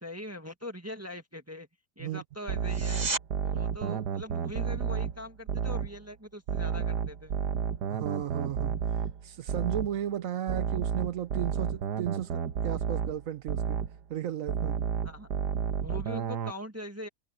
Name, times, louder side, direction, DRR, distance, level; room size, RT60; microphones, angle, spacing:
voice 1, 0.0-1.7 2.0-3.1 3.4-7.3 15.0-15.3 15.8-17.1, left 1 dB, 10° right, 1.5 m, -42 dB
sound 1, 2.5-6.0 6.5-10.0 10.5-14.0 14.5-16.5, right 7 dB, 85° right, 1.6 m, -31 dB
sound 2, 2.6-3.3 14.6-14.7, right 3 dB, 30° right, 1.1 m, -32 dB
voice 2, 7.9-8.8 9.2-13.8 14.1-14.8, right 10 dB, 65° right, 1.0 m, -35 dB
omnidirectional pair, 1.7 m